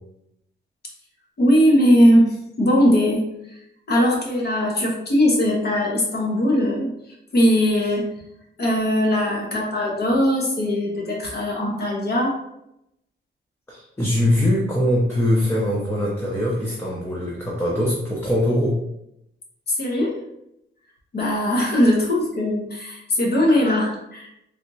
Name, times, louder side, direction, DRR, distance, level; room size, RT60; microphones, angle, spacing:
voice 1, 1.4-3.3 3.9-6.9 7.3-8.1 8.6-12.4 19.8-20.2 21.1-24.3, equal, 50° left, -2 dB, 0.9 m, -19 dB
voice 2, 13.7-18.8, left 1 dB, 10° left, -5 dB, 0.5 m, -22 dB
3.3 x 2.9 x 2.6 m, 0.80 s
wide cardioid pair, 175°, 21 cm